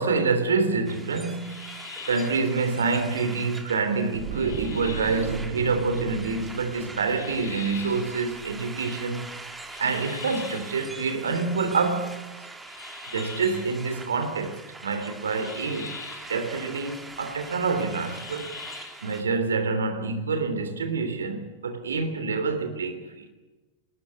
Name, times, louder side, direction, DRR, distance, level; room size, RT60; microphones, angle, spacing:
voice 1, 0.0-1.6 2.1-9.3 9.8-12.2 13.1-16.0 16.3-18.5 19.0-23.3, right 4 dB, 70° right, 3.1 m, -27 dB
sound 1, 0.8-19.2, right 2 dB, 10° right, 2.3 m, -43 dB
sound 2, 1.4-2.4 4.3-5.3 7.1-8.1 9.7-10.8 12.7-13.7 15.3-16.3 18.0-19.0, left 6 dB, 65° left, 7.2 m, -42 dB
sound 3, 4.1-9.2 9.5-9.7, right 10 dB, 40° right, 1.9 m, -39 dB
25.0 x 20.0 x 8.4 m
figure-of-eight pair, 90°, 0 cm